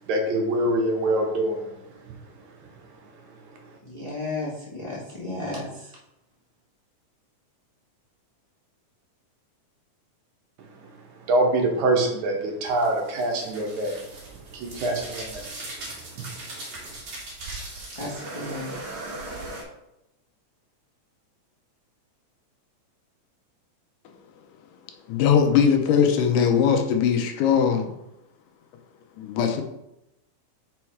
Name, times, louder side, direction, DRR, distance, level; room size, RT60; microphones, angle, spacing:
voice 1, 0.1-1.7 2.1-2.2 10.6-10.7 11.2-14.0 14.5-15.4, right 1 dB, 70° right, 2.3 m, -24 dB
voice 2, 3.8-5.9 17.9-18.8, left 2 dB, 40° left, 0.4 m, -33 dB
sound 1, 12.6-19.6, right 2 dB, 50° right, 2.6 m, -39 dB
voice 3, 25.1-27.9 29.2-29.6, left 7 dB, 85° left, 2.4 m, -20 dB
5.8 x 4.6 x 4.6 m
omnidirectional pair, 3.6 m